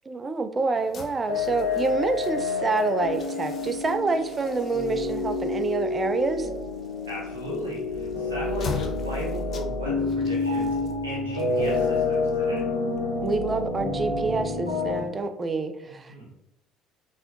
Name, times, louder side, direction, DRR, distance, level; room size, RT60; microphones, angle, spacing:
voice 1, 0.1-6.5 13.2-16.3, right 3 dB, 30° right, 9 dB, 0.3 m, -27 dB
sound 1, 0.8-13.8, left 5 dB, 45° left, 0.4 m, -43 dB
sound 2, 1.3-15.0, left 3 dB, 85° left, 0.6 m, -28 dB
voice 2, 7.1-12.7 15.8-16.3, equal, 80° right, -3 dB, 0.8 m, -36 dB
4.0 x 2.8 x 2.5 m, 0.85 s
figure-of-eight pair, 55°, 0 cm